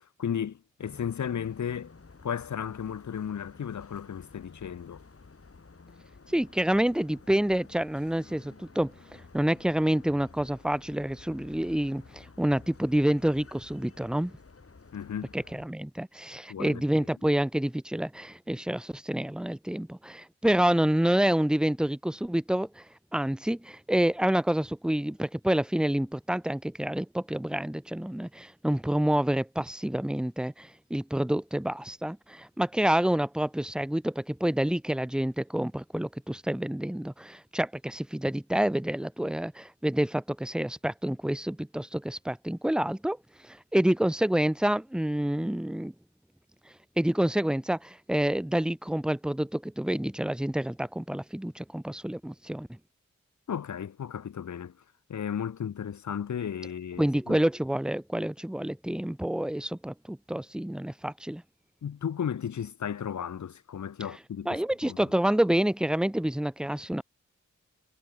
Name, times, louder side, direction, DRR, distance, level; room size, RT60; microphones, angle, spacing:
voice 1, 0.0-1.9 2.2-5.0 14.9-15.3 16.5-16.8 53.5-54.7 55.1-57.4 61.8-65.0, left 8 dB, 70° left, 0.8 m, -34 dB
sound 1, 0.8-15.7, left 4 dB, 50° left, 3.8 m, -52 dB
voice 2, 6.3-8.9 9.3-14.4 15.3-22.8 23.1-43.2 43.4-45.9 47.0-52.8 57.0-61.4 64.5-67.0, right 1 dB, 5° right, 0.5 m, -28 dB
cardioid pair, 60°, 31 cm